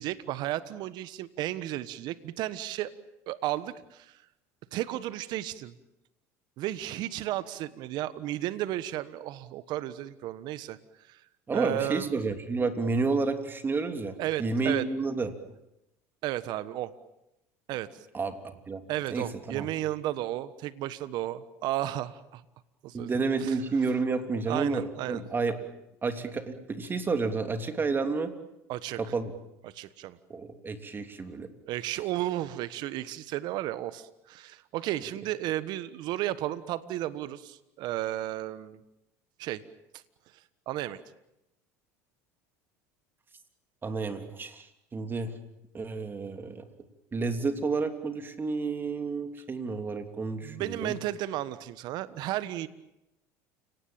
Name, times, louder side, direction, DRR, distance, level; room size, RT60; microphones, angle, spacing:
voice 1, 0.0-2.9 3.3-4.2 4.7-5.7 6.6-10.8 11.1-11.2 11.5-12.2 14.2-14.9 16.2-16.9 17.7-17.9 18.9-22.4 22.8-23.1 23.4-23.6 24.5-25.2 28.7-29.0 29.6-30.2 31.7-38.8 39.4-39.6 39.9-40.0 40.7-41.0 50.4-52.7, right 14 dB, 60° right, 15 dB, 1.4 m, -33 dB
voice 2, 11.5-15.3 18.1-18.4 18.7-18.8 19.1-19.7 22.9-25.7 26.0-28.3 29.0-29.3 30.3-31.5 43.8-45.4 45.7-46.7 47.1-50.9, right 4 dB, 25° right, 8 dB, 3.1 m, -30 dB
30.0 x 18.5 x 8.8 m, 0.89 s
supercardioid pair, 95°, 8 cm